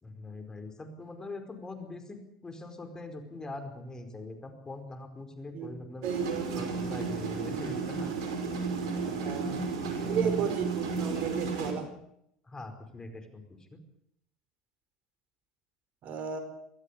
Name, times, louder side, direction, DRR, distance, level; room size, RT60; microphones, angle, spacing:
voice 1, 0.0-6.1 6.5-8.1 9.1-9.2 9.8-10.4 12.5-13.6, left 2 dB, 20° left, 7 dB, 4.9 m, -42 dB
voice 2, 6.0-6.5 9.2-9.6 10.0-11.9 16.0-16.4, right 7 dB, 55° right, 9 dB, 4.9 m, -33 dB
sound 1, 6.0-11.7, right 4 dB, 80° right, 5.5 m, -33 dB
23.0 x 15.0 x 8.6 m, 0.75 s
hypercardioid pair, 85°, 3 cm